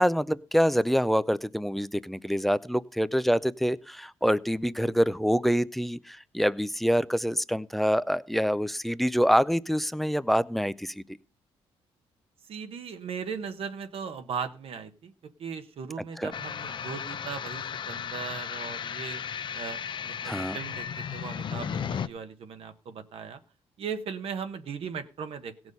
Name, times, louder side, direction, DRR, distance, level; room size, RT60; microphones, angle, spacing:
voice 1, 0.0-11.0 16.2-16.3 20.2-20.6, equal, ahead, 0.4 m, -26 dB
voice 2, 12.5-15.1 15.4-19.2 19.5-20.9 21.1-23.4 23.8-25.5, right 6 dB, 60° right, 1.2 m, -38 dB
sound 1, 16.3-22.1, left 8 dB, 50° left, 0.6 m, -35 dB
16.5 x 6.2 x 5.3 m
cardioid pair, 100°, 11 cm